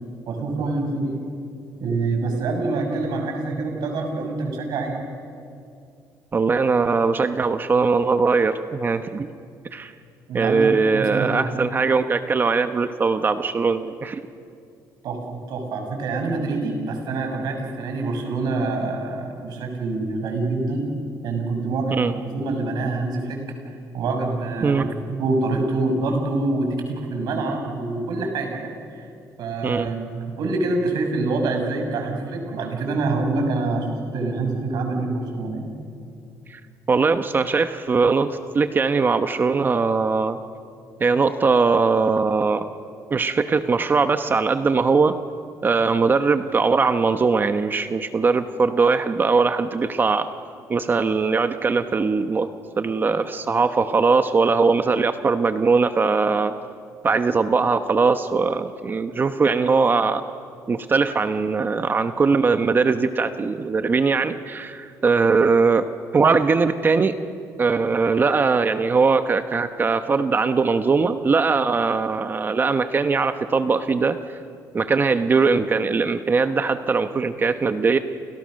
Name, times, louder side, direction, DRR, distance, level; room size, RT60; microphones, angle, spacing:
voice 1, 0.3-1.2 1.8-4.9 10.3-10.7 10.9-11.4 15.0-20.9 21.2-23.4 23.9-29.0 29.4-35.7, right 3 dB, 70° right, 3 dB, 6.6 m, -26 dB
voice 2, 6.3-9.3 9.7-9.9 10.3-14.2 21.9-22.2 24.6-24.8 29.6-29.9 36.5-36.6 36.9-40.4 41.0-42.6 43.1-45.1 45.6-50.3 50.7-52.5 52.8-56.5 57.0-60.2 60.7-65.9 66.1-67.2 67.6-74.2 74.7-78.0, right 4 dB, 30° right, 9 dB, 1.0 m, -20 dB
30.0 x 29.5 x 6.5 m, 2.4 s
cardioid pair, 125°, 7 cm